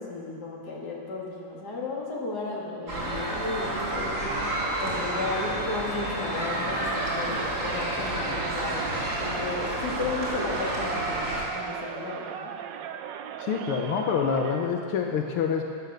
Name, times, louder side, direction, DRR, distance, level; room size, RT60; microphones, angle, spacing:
voice 1, 0.0-4.4 4.8-12.5, left 3 dB, 50° left, -4 dB, 3.0 m, -34 dB
sound 1, 2.9-11.4, right 1 dB, 45° right, 3.9 m, -30 dB
Crowd, 6.6-14.8, right 9 dB, 70° right, 1.3 m, -37 dB
voice 2, 13.4-15.6, left 6 dB, 90° left, 2 dB, 1.8 m, -26 dB
15.0 x 11.5 x 6.6 m, 2.4 s
omnidirectional pair, 2.3 m